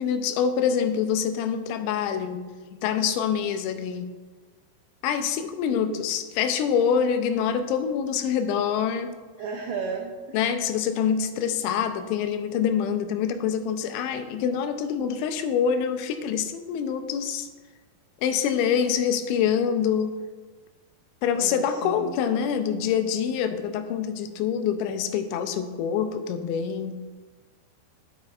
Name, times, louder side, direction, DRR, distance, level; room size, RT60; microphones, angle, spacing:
voice 1, 0.0-2.4 2.7-4.1 5.0-9.1 10.3-17.5 18.2-20.2 21.2-27.1, left 7 dB, 85° left, 8 dB, 2.9 m, -25 dB
voice 2, 5.7-6.0 9.4-10.1 21.3-22.1, right 5 dB, 85° right, 0 dB, 2.3 m, -34 dB
9.8 x 8.8 x 2.4 m, 1.4 s
omnidirectional pair, 5.2 m